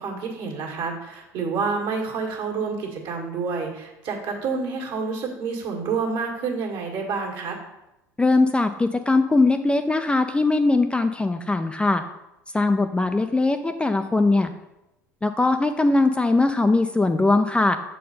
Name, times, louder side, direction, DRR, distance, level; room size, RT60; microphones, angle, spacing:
voice 1, 0.0-7.6, right 4 dB, 55° right, 0 dB, 1.8 m, -28 dB
voice 2, 8.2-12.0 12.5-14.5 15.2-17.8, left 2 dB, 10° left, 7 dB, 0.4 m, -20 dB
7.2 x 4.3 x 4.2 m, 0.93 s
figure-of-eight pair, 70°, 9 cm